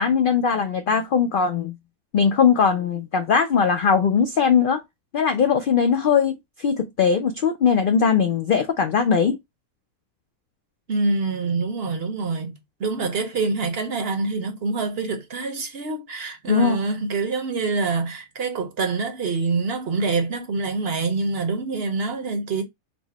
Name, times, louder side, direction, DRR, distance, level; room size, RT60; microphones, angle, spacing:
voice 1, 0.0-1.7 2.1-4.8 5.1-9.4 16.5-16.8, left 6 dB, 85° left, 0.4 m, -20 dB
voice 2, 10.9-12.5 12.8-22.6, right 3 dB, 55° right, 0.8 m, -25 dB
4.5 x 2.0 x 4.0 m
omnidirectional pair, 1.5 m